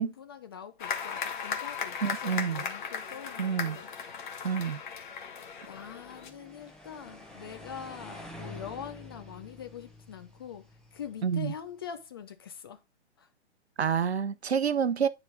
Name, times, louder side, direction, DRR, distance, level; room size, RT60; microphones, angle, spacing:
voice 1, 0.0-3.9 5.7-12.8 13.2-13.3, left 8 dB, 20° left, 0.4 m, -44 dB
sound 1, 0.8-6.3, left 6 dB, 45° left, 1.3 m, -37 dB
voice 2, 2.0-2.7 3.4-3.8 4.4-4.8 11.2-11.5 13.8-15.1, right 7 dB, 70° right, 0.8 m, -28 dB
sound 2, 5.6-11.7, left 1 dB, ahead, 0.8 m, -48 dB
9.3 x 4.8 x 3.7 m
figure-of-eight pair, 130°, 34 cm